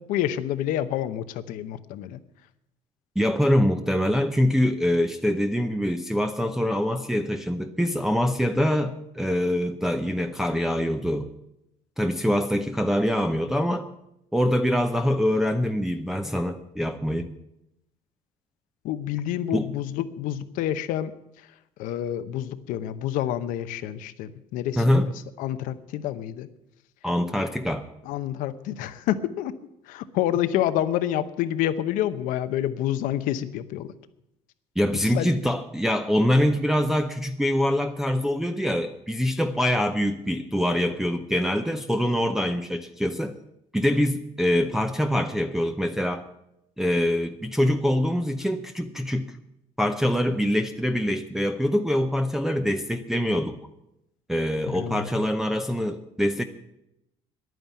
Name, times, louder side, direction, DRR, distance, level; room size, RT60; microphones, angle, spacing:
voice 1, 0.0-2.2 18.8-21.1 21.8-25.0 25.4-26.5 28.0-29.5 29.9-33.9 35.0-35.3 54.7-55.1, left 12 dB, 80° left, 12 dB, 0.8 m, -28 dB
voice 2, 3.2-11.3 12.0-13.9 14.3-17.3 19.5-19.7 24.8-25.1 27.0-27.9 34.8-43.4 43.7-46.3 46.8-49.3 49.8-53.6 54.3-56.4, equal, 5° right, 4 dB, 0.7 m, -24 dB
10.5 x 9.3 x 8.5 m, 0.84 s
cardioid pair, 105°, 14 cm